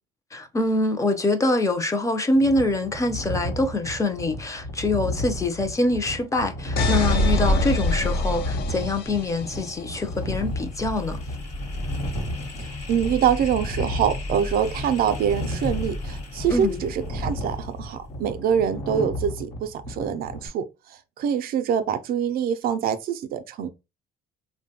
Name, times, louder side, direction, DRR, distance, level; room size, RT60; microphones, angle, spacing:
voice 1, 0.3-11.2 16.5-16.8, left 2 dB, 20° left, 0.5 m, -24 dB
sound 1, 2.3-20.5, equal, 90° left, 1.0 m, -34 dB
sound 2, 6.8-9.6, left 1 dB, 65° left, 0.6 m, -24 dB
sound 3, 9.3-18.4, left 2 dB, 45° left, 1.0 m, -36 dB
voice 2, 12.9-20.7 21.2-23.7, right 8 dB, 60° right, 0.4 m, -25 dB
3.1 x 2.1 x 2.7 m
cardioid pair, 110°, 17 cm